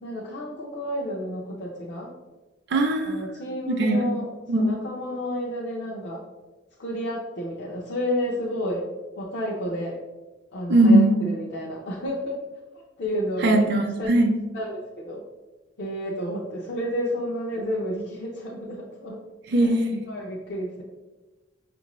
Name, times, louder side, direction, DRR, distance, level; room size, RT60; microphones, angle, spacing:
voice 1, 0.0-2.1 3.0-6.2 6.8-8.9 9.2-10.0 10.5-12.4 13.0-13.7 14.0-14.1 14.5-15.2 15.8-19.2 19.5-19.7 20.1-20.8, equal, 65° left, -4 dB, 0.6 m, -31 dB
voice 2, 2.7-3.2 3.7-4.1 4.5-4.7 10.7-11.1 13.4-14.3 19.5-20.0, right 1 dB, 65° right, 3 dB, 0.5 m, -19 dB
5.8 x 2.6 x 3.0 m, 1.2 s
head